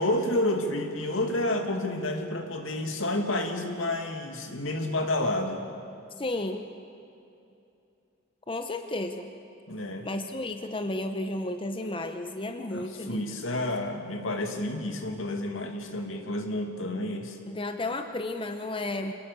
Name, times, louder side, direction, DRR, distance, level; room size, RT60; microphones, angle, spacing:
voice 1, 0.0-5.6 9.7-10.1 12.7-17.4, left 1 dB, 80° left, 4 dB, 2.4 m, -30 dB
voice 2, 6.2-6.6 8.5-9.3 10.0-13.2 17.5-19.1, left 2 dB, 25° left, 6 dB, 0.9 m, -32 dB
26.0 x 18.5 x 6.9 m, 2.7 s
head